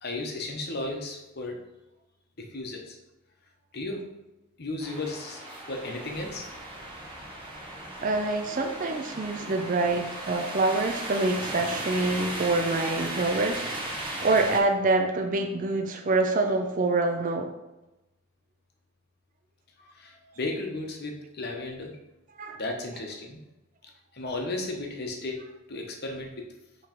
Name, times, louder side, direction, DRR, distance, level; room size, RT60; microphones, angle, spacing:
voice 1, 0.0-1.6 2.4-3.0 3.7-4.0 4.6-5.4 5.7-6.4 19.8-21.9 22.5-23.4 24.1-25.4 25.7-26.3, left 2 dB, 50° left, 2 dB, 1.0 m, -34 dB
sound 1, 4.8-14.6, right 1 dB, 25° right, 1.0 m, -36 dB
voice 2, 8.0-14.0 14.2-17.5 22.4-22.6, right 2 dB, 40° right, 4 dB, 0.5 m, -26 dB
5.8 x 3.2 x 5.1 m, 0.97 s
head